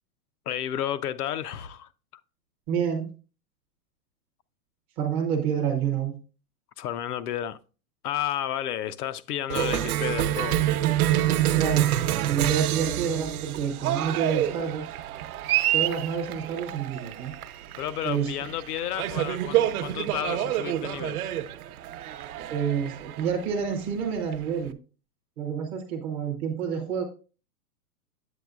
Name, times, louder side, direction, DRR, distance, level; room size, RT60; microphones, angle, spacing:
voice 1, 0.5-1.9 6.8-7.6 8.0-10.6 17.8-21.2, left 11 dB, 85° left, 0.7 m, -31 dB
voice 2, 2.7-3.1 5.0-6.1 11.6-11.8 12.2-14.9 15.7-17.3 18.0-18.3 22.5-24.8 25.4-27.0, right 7 dB, 15° right, 0.4 m, -28 dB
Cheering, 9.5-24.7, right 12 dB, 70° right, 0.7 m, -27 dB
7.9 x 7.7 x 2.3 m
hypercardioid pair, 145°, 45 cm